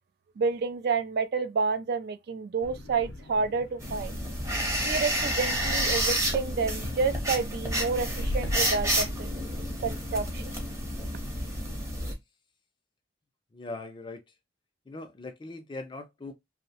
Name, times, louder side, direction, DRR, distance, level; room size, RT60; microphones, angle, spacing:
voice 1, 0.4-4.2 4.8-9.3 9.8-10.5, right 4 dB, 55° right, 0.3 m, -29 dB
sound 1, 2.6-9.6, left 1 dB, 90° left, 0.5 m, -39 dB
sound 2, 3.8-12.1, equal, 15° right, 0.7 m, -30 dB
voice 2, 13.5-14.2 14.9-16.3, left 2 dB, 25° left, 0.4 m, -40 dB
2.6 x 2.0 x 2.7 m
head